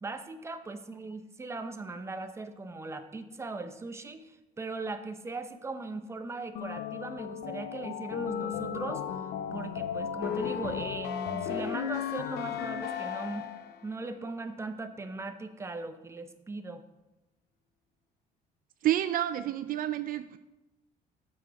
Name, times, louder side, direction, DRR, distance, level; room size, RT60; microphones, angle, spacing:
voice 1, 0.0-13.5 13.8-16.8, right 3 dB, 15° right, 8 dB, 0.7 m, -39 dB
sound 1, 6.6-13.8, left 9 dB, 70° left, 0.5 m, -35 dB
voice 2, 18.8-20.4, right 12 dB, 55° right, 11 dB, 0.4 m, -29 dB
7.5 x 6.1 x 4.7 m, 0.99 s
cardioid pair, 110°, 17 cm